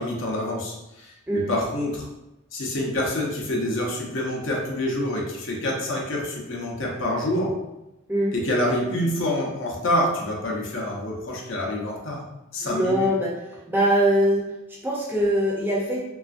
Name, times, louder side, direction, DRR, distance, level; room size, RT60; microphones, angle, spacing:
voice 1, 0.0-2.0 2.5-7.5 8.3-12.2 12.5-13.1, left 1 dB, 60° left, -2 dB, 0.6 m, -27 dB
voice 2, 12.6-13.3 13.7-14.4 14.7-16.1, equal, 10° right, -4 dB, 0.5 m, -22 dB
3.2 x 2.3 x 2.5 m, 0.97 s
head